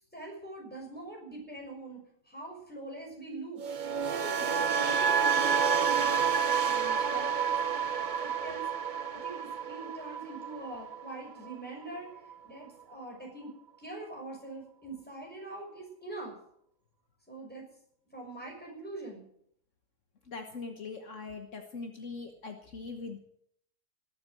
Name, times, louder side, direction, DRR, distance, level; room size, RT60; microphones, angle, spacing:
voice 1, 0.1-3.6 4.1-7.5 8.2-12.1 12.4-16.4 17.3-17.6 18.1-19.3, right 2 dB, 5° left, -1 dB, 6.3 m, -44 dB
sound 1, 3.6-11.7 12.0-12.3, right 6 dB, 40° right, 0.8 m, -29 dB
voice 2, 20.3-23.2, left 4 dB, 65° left, 4 dB, 1.6 m, -41 dB
18.5 x 8.7 x 7.8 m, 0.70 s
omnidirectional pair, 1.4 m